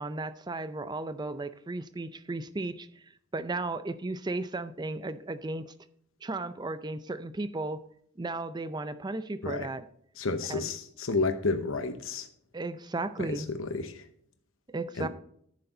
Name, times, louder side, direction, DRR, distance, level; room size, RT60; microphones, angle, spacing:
voice 1, 0.0-3.0 3.3-5.7 6.2-7.8 8.2-9.8 10.5-10.7 12.5-13.5 14.7-15.1, right 2 dB, 20° right, 13 dB, 0.5 m, -35 dB
voice 2, 10.2-12.3 13.2-14.0 15.0-15.1, left 3 dB, 75° left, 8 dB, 0.8 m, -31 dB
9.6 x 6.8 x 3.9 m, 0.67 s
head